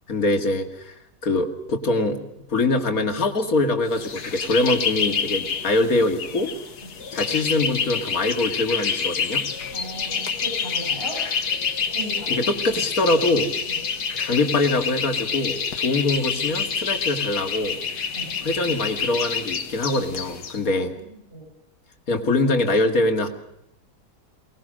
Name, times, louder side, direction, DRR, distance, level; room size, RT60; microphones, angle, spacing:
voice 1, 0.1-0.9 1.2-2.2 2.5-6.5 7.1-9.4 12.3-13.5 14.2-17.8 18.4-20.9 22.1-23.3, left 2 dB, 60° left, 5 dB, 2.6 m, -23 dB
sound 1, 3.9-20.6, left 6 dB, 80° left, 2.1 m, -28 dB
voice 2, 9.7-11.2 11.9-12.5 13.7-13.8 18.1-18.3 20.6-21.5, right 1 dB, 35° right, -2 dB, 6.4 m, -37 dB
24.0 x 19.5 x 6.4 m, 0.79 s
omnidirectional pair, 1.7 m